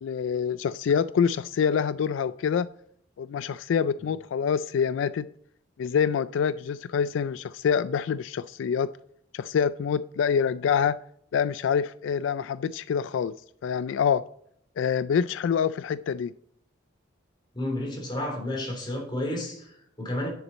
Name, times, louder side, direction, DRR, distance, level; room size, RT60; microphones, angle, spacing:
voice 1, 0.0-2.7 3.2-5.3 5.8-8.9 9.3-11.0 11.3-13.3 13.6-14.2 14.8-16.3, left 7 dB, 75° left, 0.3 m, -26 dB
voice 2, 17.5-20.3, left 1 dB, 25° left, 3.6 m, -31 dB
10.0 x 7.1 x 4.1 m
head